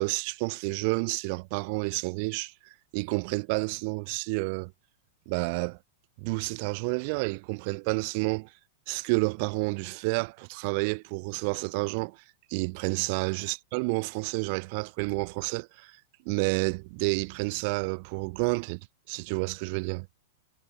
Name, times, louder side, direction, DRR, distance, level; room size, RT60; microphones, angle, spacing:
voice 1, 0.0-2.5 2.9-4.7 5.3-5.8 6.2-8.5 8.9-12.2 12.5-15.9 16.3-18.8 19.1-20.1, right 32 dB, 50° right, 5.7 m, -30 dB
hypercardioid pair, 110°, 0 cm